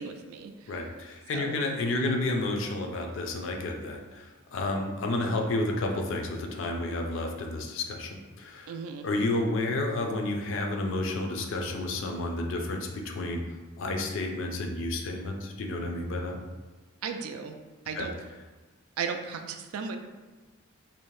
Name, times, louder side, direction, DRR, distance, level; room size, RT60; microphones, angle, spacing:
voice 1, 0.0-0.8 1.3-1.6 1.8-2.0 8.7-9.1 17.0-17.6 17.9-18.1 19.0-20.0, right 6 dB, 85° right, 7 dB, 0.3 m, -36 dB
voice 2, 0.7-8.7 9.0-13.4 13.8-16.4 17.9-18.1, left 2 dB, 60° left, 2 dB, 0.4 m, -31 dB
2.6 x 2.1 x 3.0 m, 1.2 s
head